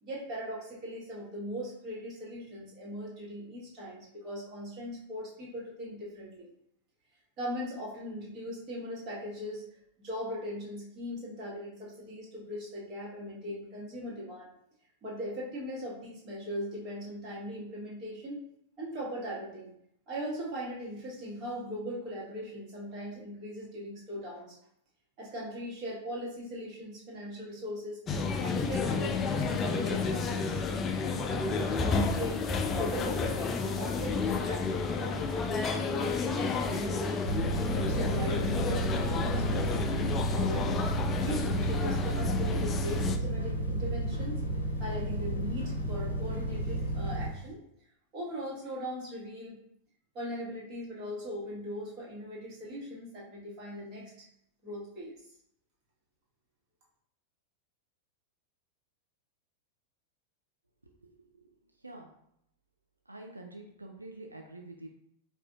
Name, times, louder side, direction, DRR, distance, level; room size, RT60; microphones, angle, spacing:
voice 1, 0.0-6.5 7.4-9.6 10.0-14.5 15.0-18.4 18.8-19.7 20.1-24.6 25.2-28.0 28.4-30.6 31.5-37.3 37.7-39.8 40.3-40.9 41.2-44.4 44.8-47.6 48.1-49.6 50.1-54.3 54.6-55.2, equal, 35° right, -5 dB, 1.4 m, -39 dB
sound 1, 28.1-43.2, left 4 dB, 25° left, 0.3 m, -31 dB
sound 2, 37.2-47.3, right 1 dB, 75° left, 0.6 m, -32 dB
voice 2, 60.8-61.5 61.8-62.1 63.1-64.9, right 2 dB, 85° right, 2 dB, 0.4 m, -47 dB
4.8 x 2.5 x 2.3 m, 0.72 s
figure-of-eight pair, 90°, 0 cm